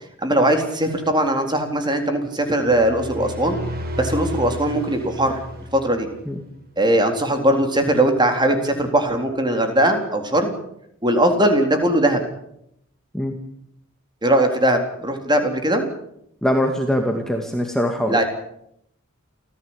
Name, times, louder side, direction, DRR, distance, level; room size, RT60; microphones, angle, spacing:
voice 1, 0.2-3.6 4.0-5.4 5.8-6.1 6.8-10.5 11.0-12.2 14.2-15.9 18.1-18.2, right 1 dB, 20° right, 5 dB, 3.8 m, -20 dB
sound 1, 2.5-6.4, equal, 45° right, 5.2 m, -32 dB
voice 2, 16.4-18.2, equal, ahead, 2 dB, 2.2 m, -22 dB
28.5 x 15.0 x 8.9 m, 0.76 s
head